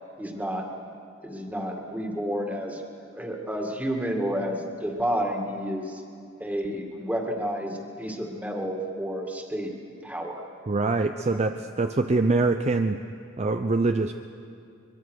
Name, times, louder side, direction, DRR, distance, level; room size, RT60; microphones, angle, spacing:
voice 1, 0.2-0.7 1.2-2.8 3.1-6.0 6.4-9.7 10.0-10.4 11.2-11.5, equal, 10° right, 2 dB, 2.1 m, -30 dB
voice 2, 10.7-13.0 13.4-14.1, right 3 dB, 35° right, 7 dB, 0.6 m, -24 dB
23.0 x 22.5 x 6.5 m, 2.4 s
head